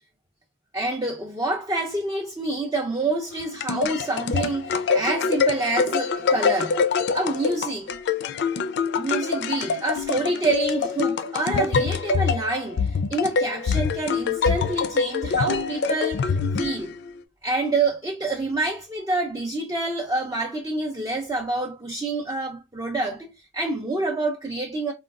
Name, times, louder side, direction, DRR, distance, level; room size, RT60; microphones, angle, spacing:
voice 1, 0.7-6.8 7.1-7.9 9.0-16.9 17.4-24.9, right 2 dB, 20° right, 0.4 m, -27 dB
sound 1, 3.3-17.2, left 5 dB, 60° left, 0.4 m, -25 dB
3.6 x 2.2 x 2.3 m
head